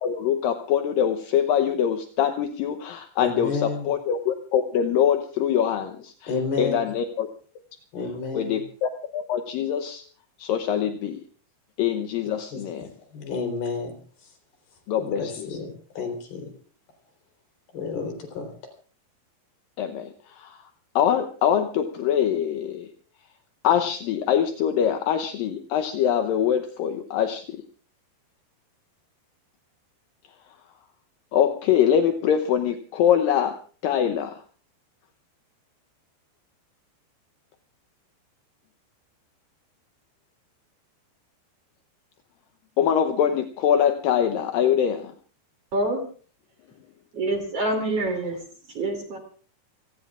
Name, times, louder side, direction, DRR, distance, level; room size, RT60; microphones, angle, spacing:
voice 1, 0.0-6.3 6.6-7.3 8.3-10.0 10.4-11.2 11.8-12.9 14.9-15.5 19.8-20.6 21.0-22.9 23.6-27.6 31.3-33.5 33.8-34.3 42.8-45.1, left 9 dB, 75° left, 6 dB, 2.1 m, -23 dB
voice 2, 3.2-3.9 6.3-6.9 7.9-8.6 12.5-12.6 13.1-13.9 15.0-16.5 17.7-18.5, left 4 dB, 60° left, 4 dB, 5.6 m, -30 dB
voice 3, 45.7-46.0 47.1-48.4 48.7-49.2, right 2 dB, 40° right, 3 dB, 3.2 m, -26 dB
28.5 x 17.5 x 2.5 m, 0.41 s
omnidirectional pair, 5.1 m